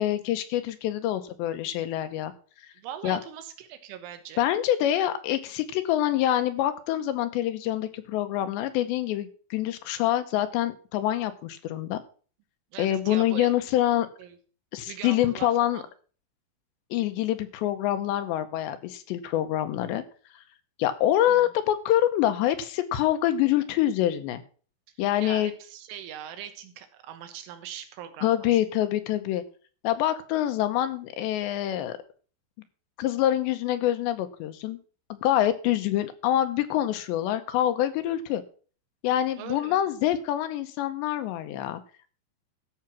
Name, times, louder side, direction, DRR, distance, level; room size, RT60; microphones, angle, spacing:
voice 1, 0.0-2.3 3.0-3.2 4.4-12.0 12.8-14.1 14.7-15.8 16.9-20.0 20.8-24.4 25.0-25.5 28.2-29.4 29.8-32.0 33.0-34.8 35.1-38.4 39.0-41.8, left 12 dB, 80° left, 10 dB, 2.8 m, -26 dB
voice 2, 2.8-4.5 12.7-13.5 14.2-14.4 14.9-15.9 21.3-21.5 25.2-28.6 39.4-39.8, right 10 dB, 90° right, 8 dB, 3.8 m, -41 dB
13.5 x 5.9 x 6.0 m, 0.41 s
omnidirectional pair, 5.5 m